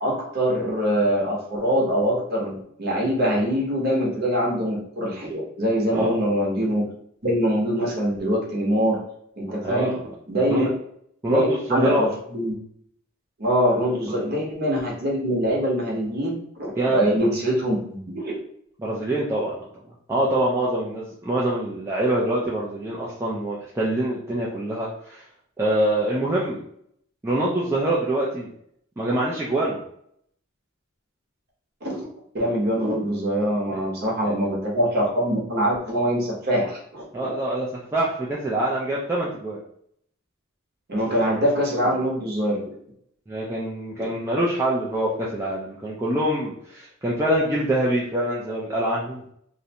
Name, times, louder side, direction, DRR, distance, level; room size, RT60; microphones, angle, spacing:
voice 1, 0.0-6.9 7.2-9.0 9.4-9.9 10.3-10.7 11.3-12.5 13.4-18.4 31.8-32.0 32.3-37.1 40.9-42.7, equal, 50° right, -3 dB, 0.8 m, -23 dB
voice 2, 9.6-10.1 10.5-10.7 11.2-12.0 16.8-17.0 18.8-19.7 20.1-25.2 25.6-26.6 27.2-28.5 29.0-29.8 33.7-33.8 34.2-34.3 37.1-39.6 43.3-49.2, right 1 dB, 15° right, -6 dB, 0.3 m, -25 dB
2.5 x 2.1 x 2.7 m, 0.70 s
head